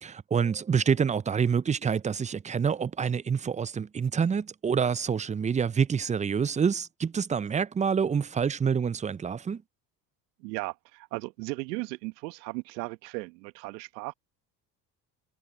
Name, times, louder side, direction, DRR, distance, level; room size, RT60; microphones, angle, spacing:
voice 1, 0.0-9.6, right 6 dB, 15° right, 0.4 m, -27 dB
voice 2, 10.4-14.1, right 25 dB, 75° right, 1.3 m, -36 dB
hypercardioid pair, 60°, 50 cm